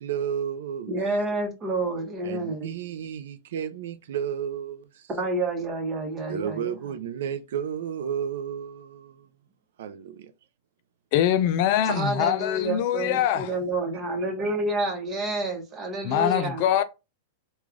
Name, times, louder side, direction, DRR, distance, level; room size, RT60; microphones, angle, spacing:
voice 1, 0.0-1.0 2.2-5.1 6.3-9.3 9.8-10.3, right 8 dB, 70° right, 0.4 m, -32 dB
voice 2, 0.9-2.7 5.2-6.7 11.9-16.6, right 2 dB, 20° right, 1.0 m, -29 dB
voice 3, 11.1-13.5 16.0-16.8, left 10 dB, 45° left, 0.3 m, -23 dB
3.1 x 2.3 x 3.7 m
supercardioid pair, 155°, 0 cm